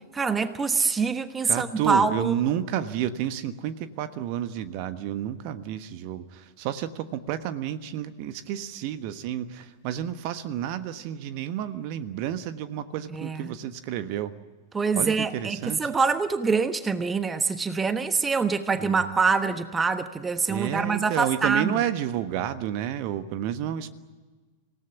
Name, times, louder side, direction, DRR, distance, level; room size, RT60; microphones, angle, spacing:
voice 1, 0.1-2.3 13.1-13.5 14.7-21.8, right 4 dB, 15° right, 11 dB, 1.2 m, -25 dB
voice 2, 1.4-14.4 15.0-15.9 18.8-19.1 20.5-23.9, right 11 dB, 45° right, 11 dB, 1.4 m, -30 dB
26.5 x 18.0 x 9.5 m, 1.3 s
figure-of-eight pair, 90°, 0 cm